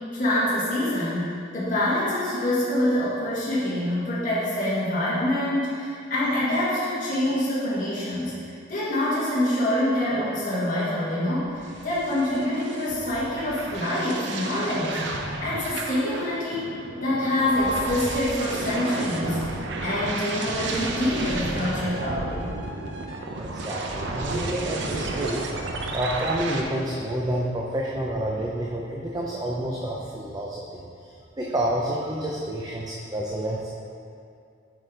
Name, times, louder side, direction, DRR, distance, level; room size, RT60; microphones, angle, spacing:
voice 1, 0.1-15.0 15.4-16.7 17.0-22.4, left 1 dB, 45° left, -10 dB, 1.7 m, -26 dB
sound 1, 11.4-26.6, right 2 dB, 65° right, 0.6 m, -32 dB
voice 2, 23.4-25.4 25.9-33.8, right 1 dB, 20° right, -3 dB, 0.5 m, -29 dB
8.3 x 4.9 x 3.8 m, 2.5 s
head